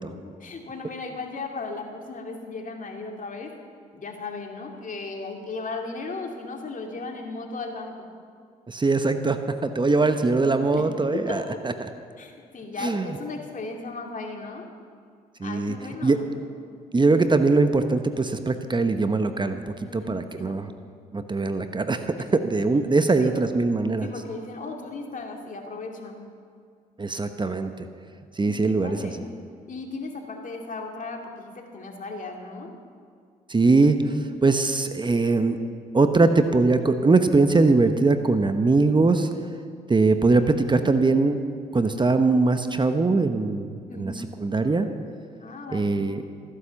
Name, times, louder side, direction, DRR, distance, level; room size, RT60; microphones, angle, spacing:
voice 1, 0.2-3.5 3.9-8.1 10.7-11.4 12.2-14.7 15.4-16.3 19.8-20.8 23.2-23.5 24.0-26.3 28.4-29.3 29.7-32.7 43.9-44.2 45.4-46.0, left 3 dB, 50° left, 2 dB, 2.5 m, -36 dB
voice 2, 8.7-11.4 11.8-11.9 12.8-13.1 15.4-15.7 16.0-16.2 16.9-19.6 19.9-20.7 21.1-24.1 27.0-27.9 28.4-29.2 33.5-35.6 35.9-39.3 39.9-41.4 41.7-44.1 44.4-44.9 45.7-46.2, right 3 dB, 25° right, 8 dB, 1.0 m, -21 dB
14.5 x 10.0 x 7.2 m, 2.2 s
supercardioid pair, 55°, 18 cm